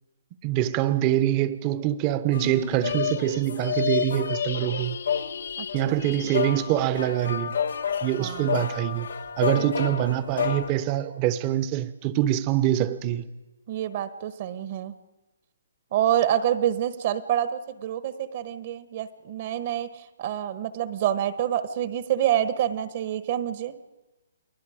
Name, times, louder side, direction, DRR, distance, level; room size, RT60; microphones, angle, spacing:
voice 1, 0.4-5.0 5.7-7.6 8.0-9.1 9.4-13.3, right 13 dB, 25° right, 0.9 m, -25 dB
sound 1, 2.3-10.7, left 7 dB, 75° left, 1.1 m, -30 dB
voice 2, 5.6-6.0 8.2-8.6 9.5-9.7 13.7-14.9 15.9-23.7, right 11 dB, 40° right, 1.2 m, -27 dB
29.5 x 20.0 x 5.1 m
hypercardioid pair, 155°, 0 cm